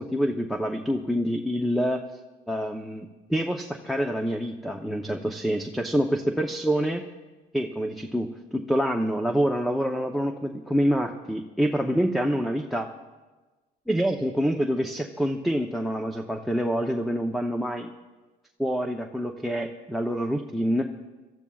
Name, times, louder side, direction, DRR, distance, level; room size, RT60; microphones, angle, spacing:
voice 1, 0.0-2.0 2.5-7.0 7.5-12.9 13.9-17.9 18.6-20.8, equal, ahead, 4 dB, 0.7 m, -26 dB
27.5 x 13.5 x 2.4 m, 1.2 s
cardioid pair, 110°, 17 cm